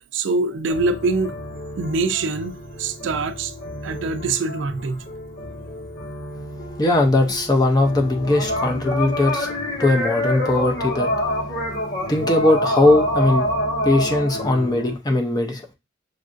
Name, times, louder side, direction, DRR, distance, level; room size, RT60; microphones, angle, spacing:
voice 1, 0.0-1.3 1.8-3.5 3.8-5.0, right 3 dB, 75° right, 0.4 m, -24 dB
sound 1, 0.7-14.9, left 1 dB, 85° left, 1.4 m, -27 dB
voice 2, 6.8-9.5 9.8-11.1 12.1-13.5 13.8-15.7, left 2 dB, 20° left, 0.5 m, -19 dB
6.3 x 2.4 x 2.5 m
head